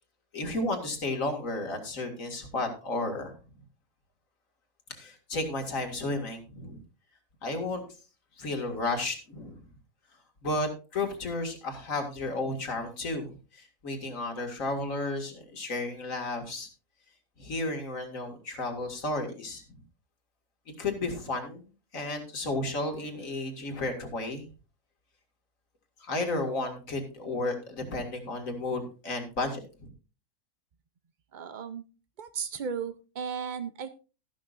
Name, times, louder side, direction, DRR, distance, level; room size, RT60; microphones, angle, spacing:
voice 1, 0.3-3.3 4.9-6.8 7.4-7.8 8.4-9.6 10.4-16.7 17.4-19.6 20.8-21.7 21.9-24.5 26.0-29.9, left 2 dB, 60° left, 4 dB, 2.5 m, -33 dB
voice 2, 31.3-31.8 32.2-33.9, right 6 dB, 55° right, 10 dB, 0.5 m, -35 dB
14.0 x 11.5 x 2.5 m, 0.34 s
omnidirectional pair, 1.6 m